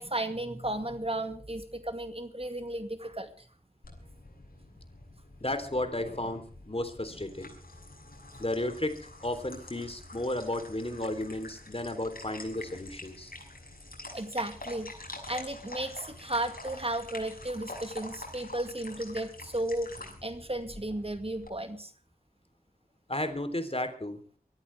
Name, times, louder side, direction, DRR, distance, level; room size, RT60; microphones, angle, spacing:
voice 1, 0.0-3.5 14.1-14.9 15.3-19.9 20.2-21.9, right 1 dB, 40° right, 8 dB, 2.2 m, -34 dB
sound 1, 3.8-21.5, left 2 dB, 70° left, 6.1 m, -46 dB
voice 2, 5.4-7.5 8.4-13.3 23.1-24.2, left 1 dB, 40° left, 8 dB, 3.5 m, -33 dB
23.5 x 14.5 x 3.5 m, 0.42 s
wide cardioid pair, 45°, 16 cm